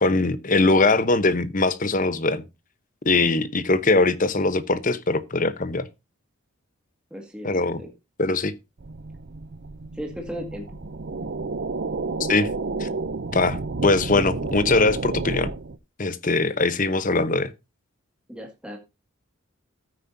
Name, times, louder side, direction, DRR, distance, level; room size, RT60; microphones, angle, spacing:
voice 1, 0.0-2.4 3.0-5.9 7.4-7.8 8.2-8.5 12.2-12.5 12.8-12.9 13.3-15.5 16.0-17.5, left 3 dB, 40° left, 0.9 m, -21 dB
voice 2, 7.1-7.9 9.9-10.7 18.3-18.8, equal, 5° right, 2.0 m, -36 dB
sound 1, 8.8-15.8, right 3 dB, 50° right, 0.6 m, -31 dB
13.5 x 9.5 x 2.7 m
head